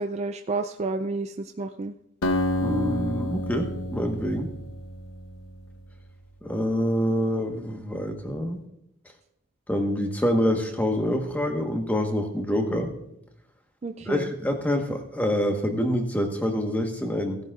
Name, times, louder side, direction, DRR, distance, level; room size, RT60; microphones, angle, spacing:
voice 1, 0.0-1.9 13.8-14.3, right 3 dB, 30° right, 6 dB, 0.3 m, -30 dB
Acoustic guitar, 2.2-5.8, left 1 dB, 70° left, 0.9 m, -29 dB
voice 2, 2.5-4.5 6.4-8.6 9.7-12.9 14.0-17.4, equal, 5° left, 3 dB, 1.2 m, -26 dB
17.0 x 10.5 x 2.4 m, 0.80 s
head